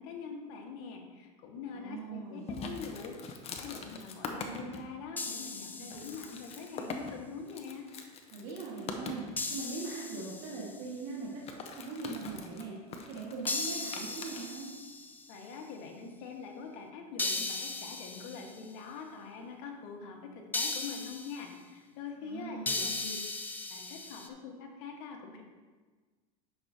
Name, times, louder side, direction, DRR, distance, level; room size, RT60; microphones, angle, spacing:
voice 1, 0.0-3.2 3.5-7.9 15.3-23.2 23.7-25.4, left 5 dB, 65° left, 2 dB, 1.5 m, -44 dB
voice 2, 1.7-2.5 8.3-9.2 9.5-11.3 11.8-12.7 13.1-14.7 22.2-22.9, right 4 dB, 55° right, -6 dB, 1.8 m, -41 dB
sound 1, 2.5-4.8 5.4-5.5 5.9-9.3 11.2-14.5, left 4 dB, 30° left, 0.8 m, -42 dB
sound 2, 5.2-6.6 9.4-10.9 13.5-15.4 17.2-18.6 20.5-21.5 22.7-24.3, left 3 dB, 10° left, 0.5 m, -37 dB
9.5 x 6.2 x 2.8 m, 1.4 s
supercardioid pair, 125°, 19 cm